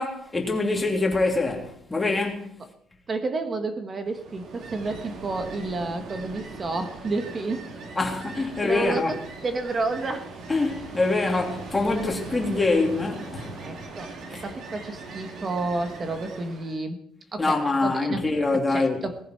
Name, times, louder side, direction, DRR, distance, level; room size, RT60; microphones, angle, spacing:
voice 1, 0.0-2.5 8.0-9.1 10.5-13.6 14.3-14.4 17.4-19.0, left 3 dB, 10° left, 3.1 m, -25 dB
voice 2, 3.1-7.7 8.6-9.2 9.4-10.3 13.6-14.1 14.4-17.0 17.3-18.3 18.7-19.2, right 3 dB, 25° right, 1.5 m, -30 dB
Ocean, 4.0-16.8, right 3 dB, 50° right, 3.5 m, -40 dB
19.0 x 14.5 x 4.6 m
cardioid pair, 160°, 0 cm